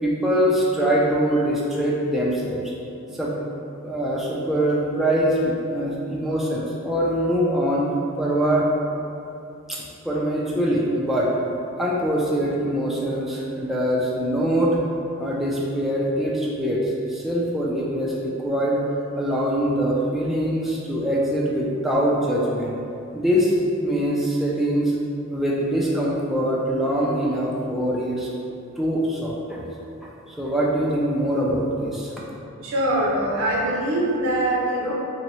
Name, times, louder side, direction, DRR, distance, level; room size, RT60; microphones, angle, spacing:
voice 1, 0.0-2.7 3.2-3.3 3.8-7.9 8.2-8.7 9.7-11.3 11.8-14.8 15.2-18.8 19.2-22.7 23.1-23.5 23.8-24.9 25.3-28.3 28.8-29.6 30.0-32.1, equal, ahead, -5 dB, 0.3 m, -23 dB
voice 2, 32.6-34.9, right 1 dB, 80° right, -4 dB, 0.7 m, -23 dB
3.0 x 2.8 x 3.0 m, 2.6 s
head